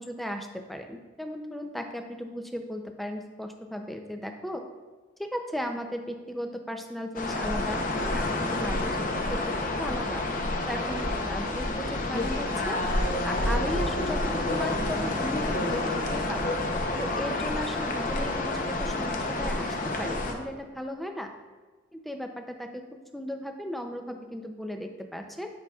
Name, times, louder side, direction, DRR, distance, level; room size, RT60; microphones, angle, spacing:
voice 1, 0.0-4.6 5.2-9.0 9.3-10.2 10.7-12.8 13.2-14.2 14.5-16.5 17.0-21.3 21.9-22.8 23.1-25.5, equal, ahead, 4 dB, 0.4 m, -36 dB
sound 1, 7.1-20.3, left 2 dB, 45° left, 0.7 m, -29 dB
10.5 x 5.6 x 2.3 m, 1.3 s
head